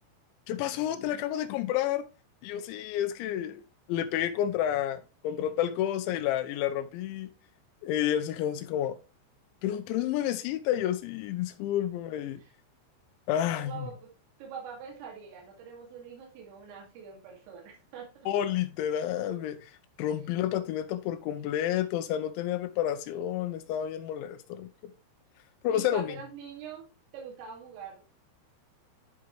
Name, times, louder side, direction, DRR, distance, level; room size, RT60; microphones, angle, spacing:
voice 1, 0.5-2.0 2.4-3.6 3.9-7.3 7.8-9.0 9.6-12.4 13.3-13.9 18.3-19.7 20.0-24.9 25.6-26.2, left 11 dB, 85° left, 2.7 m, -30 dB
voice 2, 13.6-14.1 14.4-18.3 25.7-26.9 27.1-28.0, right 6 dB, 80° right, 5.1 m, -44 dB
12.0 x 4.7 x 3.2 m
omnidirectional pair, 5.8 m